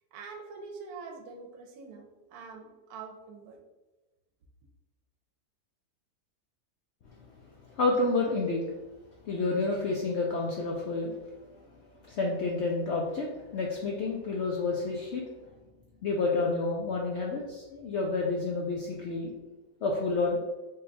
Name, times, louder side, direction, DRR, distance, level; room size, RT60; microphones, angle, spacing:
voice 1, 0.1-3.6, right 4 dB, 75° right, 3 dB, 1.1 m, -45 dB
voice 2, 7.7-8.6 9.3-11.2 12.1-15.3 16.0-19.3 19.8-20.4, left 3 dB, 75° left, -2 dB, 0.6 m, -29 dB
3.7 x 2.2 x 3.9 m, 1.1 s
omnidirectional pair, 1.7 m